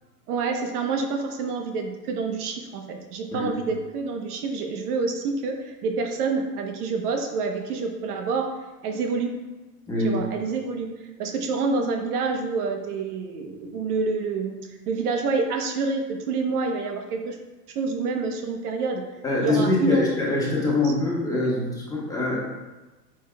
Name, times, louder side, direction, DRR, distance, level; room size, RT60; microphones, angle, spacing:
voice 1, 0.3-8.5 8.8-9.3 10.0-14.6 14.9-17.4 17.7-19.0 19.4-20.3 20.8-20.9 21.4-21.5, right 4 dB, 65° right, 4 dB, 1.1 m, -27 dB
voice 2, 9.9-10.2 19.2-22.4, left 2 dB, 5° left, -5 dB, 1.3 m, -24 dB
9.1 x 4.8 x 2.3 m, 1.2 s
hypercardioid pair, 130°, 49 cm